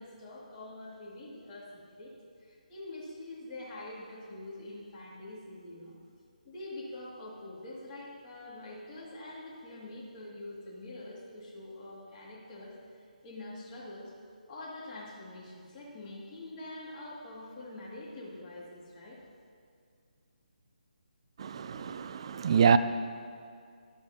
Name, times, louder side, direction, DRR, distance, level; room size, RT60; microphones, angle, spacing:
voice 1, 0.0-2.1 2.4-6.0 6.4-14.1 14.5-19.2, left 2 dB, 20° left, 2.2 m, -45 dB
voice 2, 21.4-22.8, right 6 dB, 35° right, 0.4 m, -25 dB
14.0 x 11.0 x 2.8 m
hypercardioid pair, 160°, 5 cm